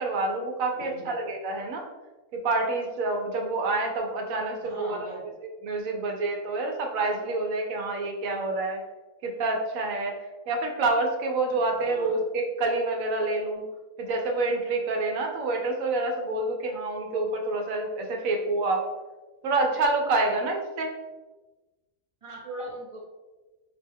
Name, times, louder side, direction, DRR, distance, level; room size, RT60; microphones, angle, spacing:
voice 1, 0.0-1.9 2.3-5.1 5.6-8.8 9.2-13.6 14.0-18.9 19.4-20.9, right 2 dB, 80° right, 2 dB, 1.1 m, -27 dB
voice 2, 0.7-1.2 4.6-5.3 11.8-12.2 22.2-23.0, right 1 dB, 30° right, -2 dB, 0.6 m, -40 dB
4.5 x 2.2 x 3.4 m, 1.2 s
omnidirectional pair, 1.4 m